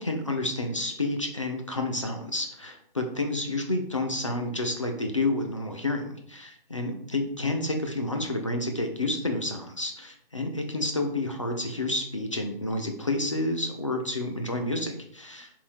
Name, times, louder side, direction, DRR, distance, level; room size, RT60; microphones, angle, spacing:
voice 1, 0.0-15.5, left 2 dB, 35° left, 3 dB, 0.4 m, -30 dB
3.6 x 2.6 x 4.3 m, 0.67 s
hypercardioid pair, 170°, 29 cm